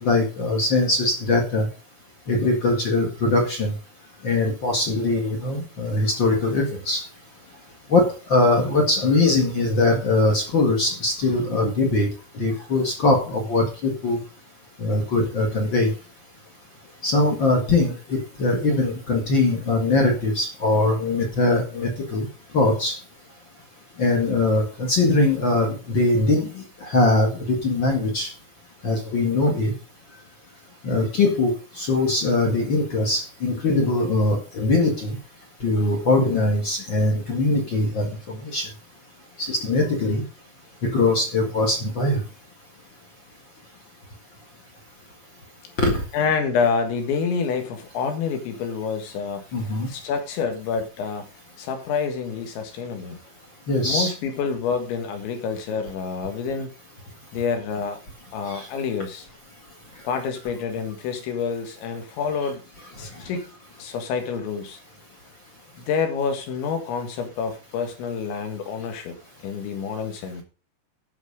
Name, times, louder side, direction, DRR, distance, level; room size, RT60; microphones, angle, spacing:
voice 1, 0.0-1.7 2.3-3.7 4.2-7.0 7.9-12.1 12.3-14.2 14.8-15.9 17.0-22.3 22.5-22.9 24.0-28.3 28.8-29.7 30.8-35.2 35.6-38.7 39.4-40.2 40.9-42.2 45.8-46.0 49.5-49.9 53.7-54.1 58.5-58.7, left 2 dB, 50° left, 2 dB, 1.4 m, -21 dB
voice 2, 46.1-49.4 49.9-51.3 51.6-53.2 53.8-56.7 57.3-58.0 58.3-59.3 60.0-62.6 63.0-63.5 63.8-64.8 65.8-69.2 69.4-70.4, left 5 dB, 85° left, 6 dB, 4.1 m, -27 dB
13.5 x 6.3 x 5.1 m, 0.35 s
omnidirectional pair, 5.2 m